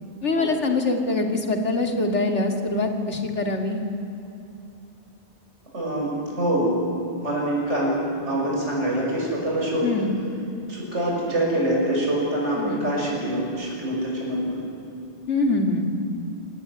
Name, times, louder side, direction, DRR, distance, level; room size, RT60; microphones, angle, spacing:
voice 1, 0.2-3.8 9.8-10.2 12.6-12.9 15.3-15.9, left 2 dB, 80° left, 4 dB, 2.9 m, -24 dB
voice 2, 5.7-6.8 7.2-8.0 8.2-9.9 10.7-14.6, right 1 dB, 90° right, -3 dB, 6.9 m, -25 dB
27.5 x 18.5 x 9.9 m, 2.8 s
omnidirectional pair, 1.2 m